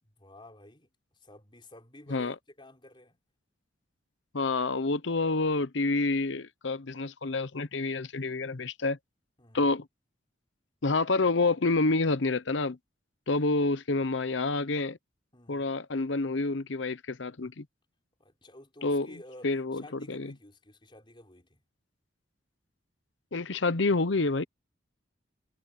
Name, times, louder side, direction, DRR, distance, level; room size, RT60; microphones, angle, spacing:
voice 1, 0.0-3.2 9.4-9.8 15.3-15.7 18.2-21.6, left 1 dB, 25° left, 5.0 m, -52 dB
voice 2, 4.3-9.0 9.5-9.9 10.8-12.8 13.3-15.0 15.5-17.7 18.8-19.1 19.4-19.8 20.1-20.3 23.3-24.4, left 3 dB, 70° left, 0.9 m, -28 dB
head